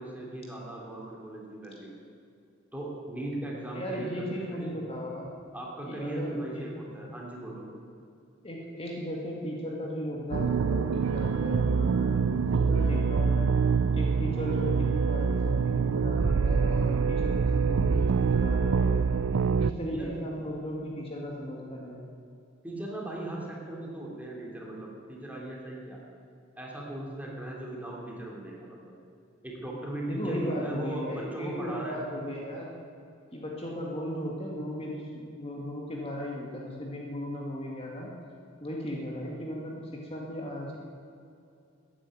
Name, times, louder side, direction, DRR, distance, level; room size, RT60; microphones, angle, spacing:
voice 1, 0.0-2.0 2.7-4.7 5.5-7.7 19.9-20.1 22.6-26.0 26.6-28.9 29.4-32.0, right 1 dB, 10° right, -3 dB, 3.0 m, -38 dB
voice 2, 3.7-5.3 5.9-6.7 8.4-13.5 13.9-19.0 19.5-22.0 30.1-32.8 33.3-38.1 38.6-40.8, equal, 30° left, -2 dB, 2.0 m, -36 dB
sound 1, 10.3-19.7, right 5 dB, 85° right, 0.5 m, -25 dB
14.0 x 10.0 x 9.0 m, 2.5 s
head